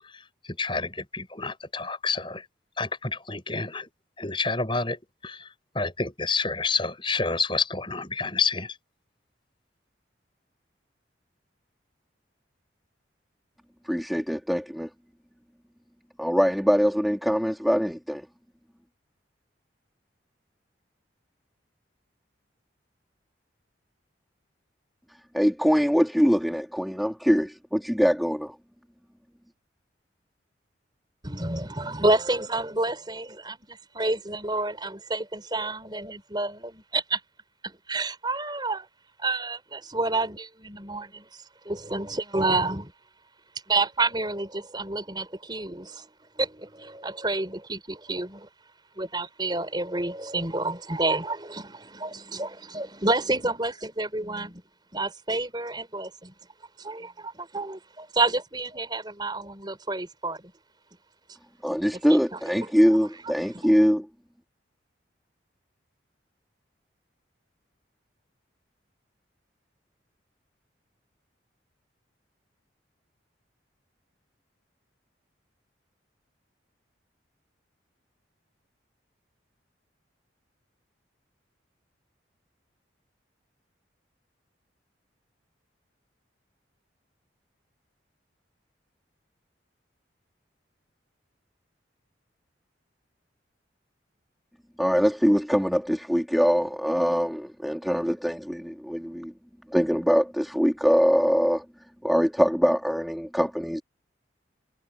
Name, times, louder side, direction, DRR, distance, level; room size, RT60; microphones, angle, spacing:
voice 1, 0.6-2.4 2.8-3.8 4.2-5.0 5.8-8.7, left 4 dB, 25° left, 7.2 m, -28 dB
voice 2, 13.9-14.9 16.2-18.3 25.3-28.5 61.6-64.1 94.8-99.3 99.7-101.6 102.0-103.8, equal, ahead, 3.2 m, -23 dB
voice 3, 31.2-37.2 37.6-38.9 39.2-41.3 41.7-42.9 43.7-46.1 46.4-48.5 49.0-54.6 54.9-56.3 56.8-60.4 62.1-62.4 62.9-63.0, right 2 dB, 25° right, 4.3 m, -29 dB
head